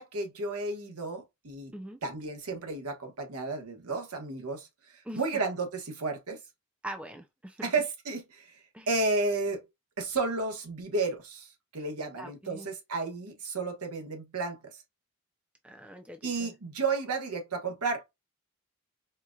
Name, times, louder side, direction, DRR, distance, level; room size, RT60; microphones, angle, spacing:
voice 1, 0.0-1.7 2.0-4.7 5.1-6.4 7.6-8.5 8.9-9.6 10.0-14.6 16.2-18.0, right 3 dB, 90° right, 1.2 m, -32 dB
voice 2, 6.8-7.7 8.7-8.9 12.2-12.7 15.6-16.5, right 1 dB, 5° right, 0.4 m, -43 dB
4.3 x 2.5 x 2.3 m
head